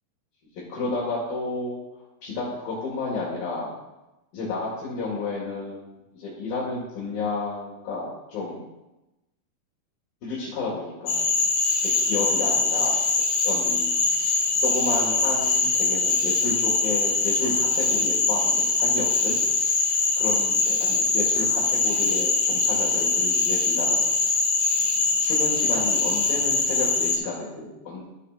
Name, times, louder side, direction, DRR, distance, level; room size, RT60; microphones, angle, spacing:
voice 1, 0.7-1.8 2.2-3.7 4.3-8.6 10.2-11.4 11.8-13.0 13.4-14.1 14.6-19.4 20.2-24.1 25.2-28.0, left 3 dB, 80° left, -7 dB, 3.7 m, -31 dB
Cricket / Frog, 11.1-27.2, left 3 dB, 60° left, 2.3 m, -23 dB
13.5 x 7.7 x 2.5 m, 0.99 s
omnidirectional pair, 4.0 m